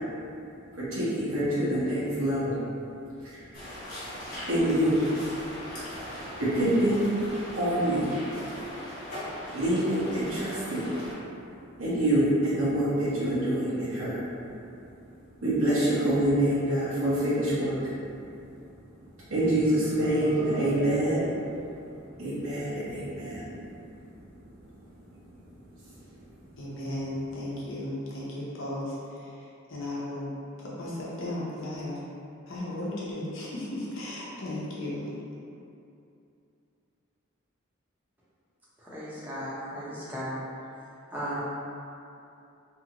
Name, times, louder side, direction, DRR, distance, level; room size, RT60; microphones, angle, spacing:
voice 1, 0.7-2.5 3.2-3.5 4.5-5.0 6.4-7.0 7.5-8.1 9.5-11.0 11.8-14.2 15.4-17.9 19.3-21.4 21.8-21.9 22.2-23.8, right 1 dB, 70° right, -10 dB, 1.0 m, -26 dB
sound 1, 3.5-11.1, equal, 45° left, 1.1 m, -40 dB
voice 2, 26.6-30.3 30.6-32.0 32.5-35.0, left 1 dB, 65° left, -7 dB, 0.7 m, -35 dB
voice 3, 38.9-40.5 41.1-41.4, equal, 10° right, -10 dB, 0.7 m, -35 dB
2.8 x 2.4 x 2.8 m, 2.6 s
head